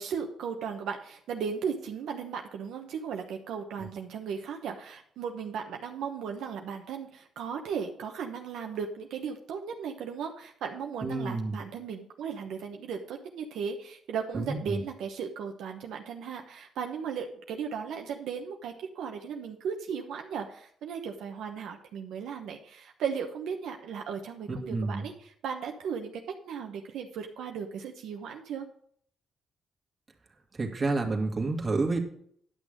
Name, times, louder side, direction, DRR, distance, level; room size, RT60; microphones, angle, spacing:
voice 1, 0.0-28.7, right 6 dB, 80° right, 3 dB, 1.0 m, -36 dB
voice 2, 11.0-11.6 14.3-14.8 24.5-25.0 30.6-32.0, right 3 dB, 30° right, 3 dB, 2.0 m, -29 dB
10.5 x 6.3 x 5.1 m, 0.63 s
cardioid pair, 90°, 0 cm